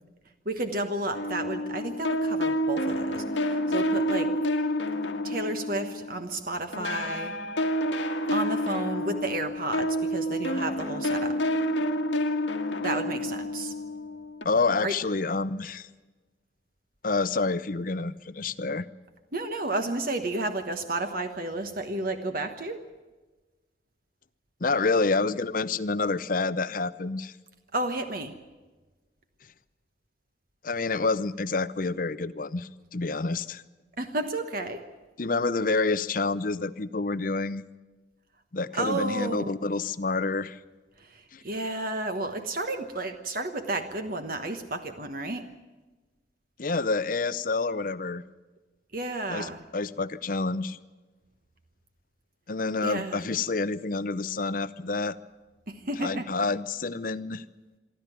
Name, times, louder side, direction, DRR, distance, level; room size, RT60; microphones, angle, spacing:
voice 1, 0.4-4.3 5.2-7.4 8.3-11.5 12.8-13.7 14.8-15.0 19.3-22.8 27.7-28.4 34.0-34.9 38.7-39.5 41.0-45.5 48.9-49.7 52.8-53.2 55.7-56.3, right 2 dB, 50° right, 7 dB, 1.2 m, -32 dB
sound 1, 1.1-6.4 6.7-14.4, equal, 85° left, 1.7 m, -29 dB
voice 2, 14.4-15.9 17.0-18.9 24.6-27.3 30.6-33.6 35.2-37.6 38.5-40.6 41.3-41.4 46.6-48.2 49.3-50.8 52.5-55.2 56.0-57.4, left 3 dB, 45° left, 16 dB, 0.7 m, -28 dB
24.0 x 13.5 x 9.2 m, 1.2 s
head